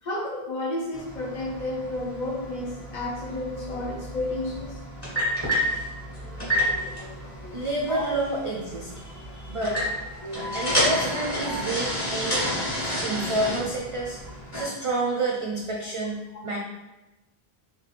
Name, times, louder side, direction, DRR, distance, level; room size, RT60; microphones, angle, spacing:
voice 1, 0.0-4.8 6.2-7.6 7.9-8.0 9.8-9.9 10.1-10.5 11.4-11.6, left 2 dB, 50° left, -1 dB, 0.8 m, -33 dB
sound 1, 0.9-14.6, equal, 25° left, 1.4 m, -30 dB
voice 2, 7.5-9.8 10.5-12.5 12.8-14.2 14.5-16.2 16.4-16.6, right 2 dB, 50° right, -2 dB, 0.4 m, -29 dB
3.7 x 2.9 x 3.1 m, 1.1 s
omnidirectional pair, 1.0 m